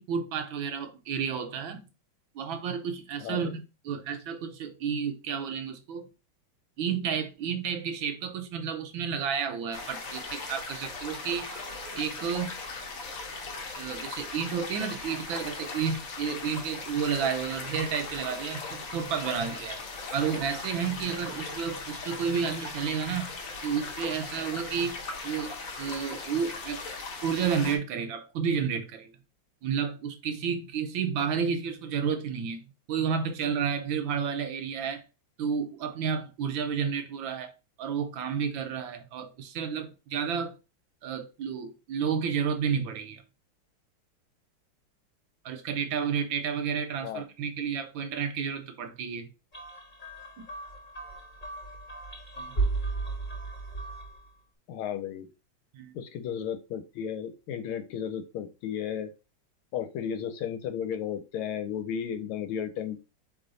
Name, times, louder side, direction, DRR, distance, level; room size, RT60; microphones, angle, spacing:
voice 1, 0.0-1.9 2.3-6.1 6.8-12.5 13.7-19.8 20.1-23.3 23.6-26.8 27.2-29.1 29.6-32.6 32.9-35.0 35.4-37.5 37.8-40.6 41.0-43.2 45.4-49.3 50.4-50.5 52.4-52.6 55.7-55.9, right 7 dB, 75° right, 1.2 m, -31 dB
voice 2, 3.2-3.6 47.0-47.2 54.7-55.3 55.9-59.1 59.7-63.0, left 8 dB, 80° left, 1.5 m, -34 dB
sound 1, 9.7-27.8, left 3 dB, 60° left, 0.8 m, -39 dB
sound 2, 49.5-54.3, right 3 dB, 30° left, 0.9 m, -34 dB
4.3 x 3.1 x 3.9 m
omnidirectional pair, 2.4 m